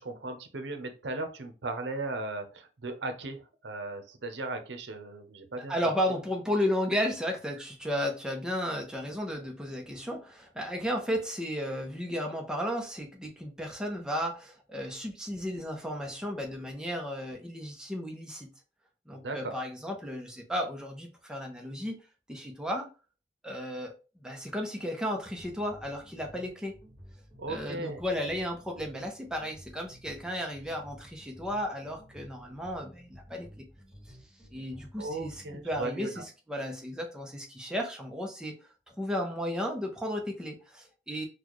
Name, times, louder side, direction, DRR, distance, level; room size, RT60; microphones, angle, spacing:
voice 1, 0.0-5.7 19.1-19.6 27.4-28.0 35.0-36.2, right 2 dB, 80° right, 7 dB, 0.7 m, -37 dB
voice 2, 5.7-18.5 19.1-22.0 22.3-22.9 23.4-26.7 27.5-33.7 34.5-38.6 38.9-41.3, equal, 5° right, 1 dB, 0.7 m, -34 dB
sound 1, 25.4-35.8, equal, 20° right, 1.9 m, -53 dB
4.0 x 2.3 x 3.0 m, 0.33 s
head